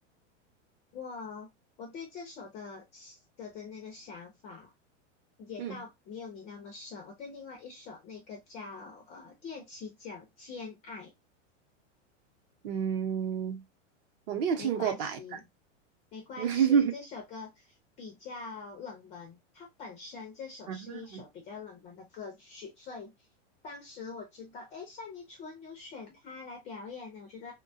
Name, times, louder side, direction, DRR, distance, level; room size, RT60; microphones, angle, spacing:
voice 1, 0.9-1.5 1.8-4.7 5.4-11.1 14.6-15.5 16.1-23.3 23.6-27.5, left 4 dB, 20° left, 0.3 m, -44 dB
voice 2, 12.6-13.6 14.3-15.2 16.4-16.9 20.7-21.2, right 7 dB, 45° right, 0.7 m, -28 dB
2.8 x 2.2 x 2.6 m
supercardioid pair, 145°, 38 cm